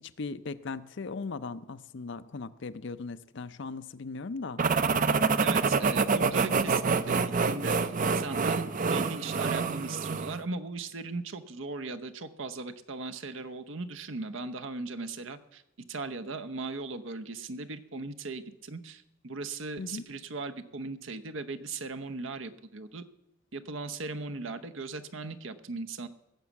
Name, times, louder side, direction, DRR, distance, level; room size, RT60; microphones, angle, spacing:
voice 1, 0.0-4.6 19.8-20.0, left 4 dB, 65° left, 13 dB, 0.6 m, -38 dB
sound 1, 4.6-10.4, right 4 dB, 40° right, 0.6 m, -27 dB
voice 2, 5.4-15.6 15.9-23.0 23.5-26.1, right 3 dB, 75° right, 11 dB, 0.9 m, -38 dB
17.0 x 7.4 x 7.1 m, 0.86 s
head